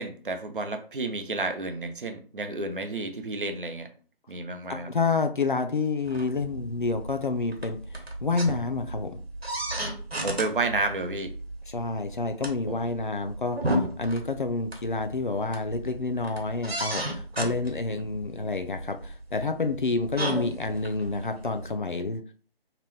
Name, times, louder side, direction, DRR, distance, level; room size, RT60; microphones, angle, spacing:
voice 1, 0.0-3.9 4.3-4.9 10.2-11.3 12.7-12.8 17.9-18.0, right 3 dB, 60° right, 7 dB, 0.6 m, -31 dB
voice 2, 4.7-9.2 11.7-22.2, left 3 dB, 55° left, 7 dB, 0.5 m, -29 dB
sound 1, 6.0-21.8, right 1 dB, 90° right, 1.0 m, -35 dB
3.0 x 2.9 x 3.2 m, 0.41 s
figure-of-eight pair, 160°, 30 cm